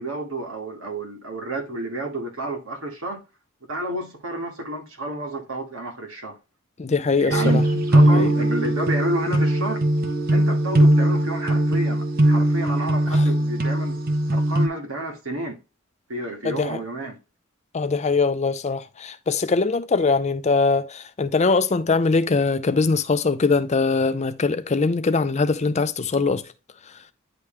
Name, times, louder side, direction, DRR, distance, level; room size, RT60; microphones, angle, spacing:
voice 1, 0.0-3.2 3.7-6.4 7.2-7.6 7.9-9.8 10.3-14.0 14.3-15.6 16.1-17.2, right 1 dB, 85° right, 2.0 m, -30 dB
voice 2, 6.8-7.6 8.1-8.3 13.1-13.3 16.4-16.8 17.7-26.4, left 4 dB, 35° left, 0.5 m, -22 dB
sound 1, 7.3-14.7, right 1 dB, 45° right, 1.0 m, -20 dB
9.7 x 3.3 x 3.3 m
head